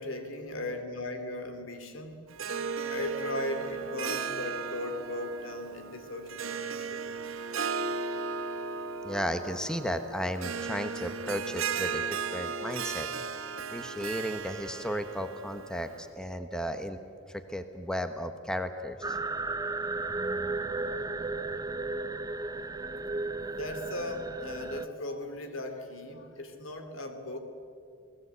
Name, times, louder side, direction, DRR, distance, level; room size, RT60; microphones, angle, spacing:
voice 1, 0.0-2.2 2.8-7.0 22.3-22.8 23.5-27.4, left 1 dB, 75° left, 7 dB, 2.8 m, -38 dB
Harp, 2.3-16.0, right 5 dB, 80° right, 1.2 m, -36 dB
voice 2, 9.0-13.4 13.7-17.0 17.3-19.2, equal, 5° left, 8 dB, 1.1 m, -34 dB
sound 1, 19.0-24.9, right 3 dB, 20° right, 0.6 m, -34 dB
29.0 x 18.5 x 8.2 m, 2.4 s
head